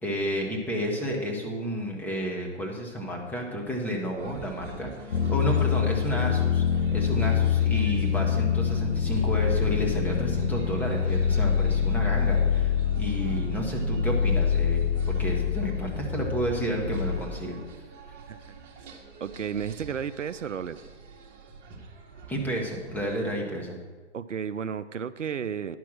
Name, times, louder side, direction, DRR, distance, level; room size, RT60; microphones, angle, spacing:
voice 1, 0.0-6.6 6.9-17.6 22.3-23.8, equal, 5° left, -1 dB, 1.1 m, -31 dB
sound 1, 4.2-23.4, right 4 dB, 35° right, 1.4 m, -45 dB
sound 2, 5.1-17.2, left 7 dB, 85° left, 0.9 m, -25 dB
voice 2, 19.2-20.8 24.1-25.8, right 7 dB, 85° right, 13 dB, 0.5 m, -32 dB
10.0 x 5.9 x 6.0 m, 1.4 s
figure-of-eight pair, 115°, 36 cm